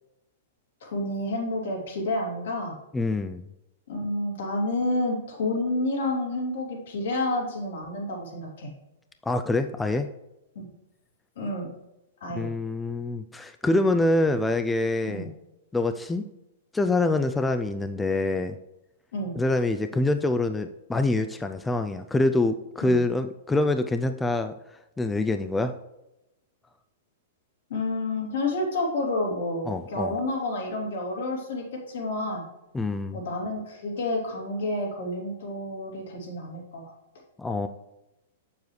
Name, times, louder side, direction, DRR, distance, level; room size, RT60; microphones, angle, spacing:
voice 1, 0.8-2.8 3.9-8.7 10.5-10.7 11.4-11.7 12.2-12.5 15.1-15.3 19.1-19.4 22.8-23.0 27.7-32.4 33.1-36.9, left 2 dB, 70° left, -1 dB, 2.8 m, -29 dB
voice 2, 2.9-3.5 9.2-10.1 12.3-15.3 15.7-16.3 16.7-18.6 19.4-25.7 29.7-30.1 32.7-33.2 37.4-37.7, left 2 dB, 10° left, 8 dB, 0.4 m, -25 dB
7.6 x 7.0 x 3.2 m, 0.93 s
hypercardioid pair, 110°, 0 cm